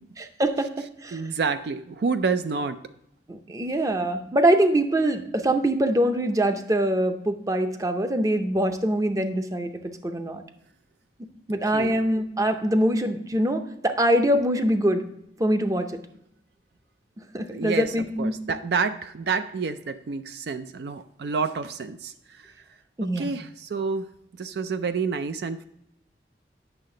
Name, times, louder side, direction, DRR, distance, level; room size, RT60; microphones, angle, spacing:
voice 1, 0.2-1.2 3.3-10.4 11.5-15.0 15.4-15.9 17.3-18.4 23.0-23.3, right 1 dB, 20° right, 7 dB, 0.6 m, -24 dB
voice 2, 1.1-2.8 11.7-12.0 17.5-22.5 23.0-24.1 24.4-25.6, right 5 dB, 65° right, 10 dB, 0.4 m, -29 dB
9.0 x 6.5 x 3.8 m, 0.79 s
head